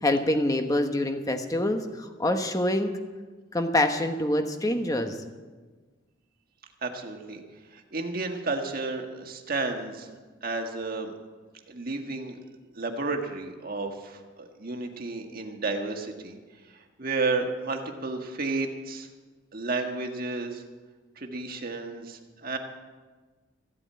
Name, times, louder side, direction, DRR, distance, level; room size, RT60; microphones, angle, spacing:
voice 1, 0.0-3.0 3.5-5.2, left 1 dB, 15° left, 6 dB, 1.0 m, -26 dB
voice 2, 6.8-7.4 7.7-11.1 11.7-12.4 12.7-16.4 16.7-19.1 19.5-20.6 21.2-22.6, right 3 dB, 45° right, 4 dB, 1.5 m, -32 dB
15.0 x 8.7 x 8.7 m, 1.4 s
head